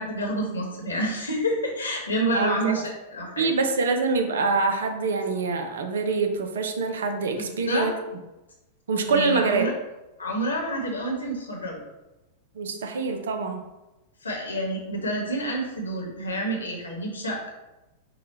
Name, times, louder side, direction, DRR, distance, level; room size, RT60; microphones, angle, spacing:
voice 1, 0.0-3.5 7.4-7.9 9.1-9.7 10.2-11.8 14.2-17.5, right 1 dB, 75° left, 0 dB, 1.1 m, -28 dB
voice 2, 2.3-2.7 3.4-7.9 8.9-9.7 12.5-13.6, right 4 dB, 65° right, 6 dB, 0.6 m, -25 dB
4.7 x 2.3 x 4.2 m, 1.0 s
figure-of-eight pair, 95°, 0 cm